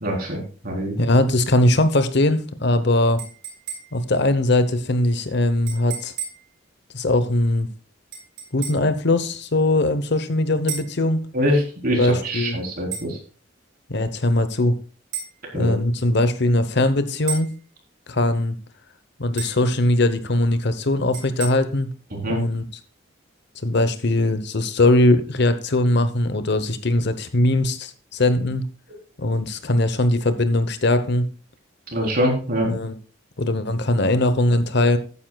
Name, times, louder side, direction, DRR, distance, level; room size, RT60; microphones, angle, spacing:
voice 1, 0.0-1.0 11.3-13.2 15.5-15.7 22.1-22.4 31.9-32.7, equal, 50° right, 0 dB, 3.9 m, -24 dB
voice 2, 1.0-3.2 3.9-6.1 6.9-7.7 8.5-11.2 12.0-12.6 13.9-14.8 15.5-17.5 18.1-18.5 19.2-21.9 22.3-22.6 23.6-28.7 29.2-31.3 32.6-32.9 33.4-35.0, left 1 dB, 60° left, 11 dB, 1.0 m, -20 dB
sound 1, 3.2-4.1 5.7-6.5 8.1-8.9 10.7-11.0 12.9-13.1 15.1-15.4 17.3-17.6 19.4-19.7 21.1-21.5, right 8 dB, 70° right, 4.2 m, -33 dB
13.5 x 9.8 x 2.4 m, 0.38 s
head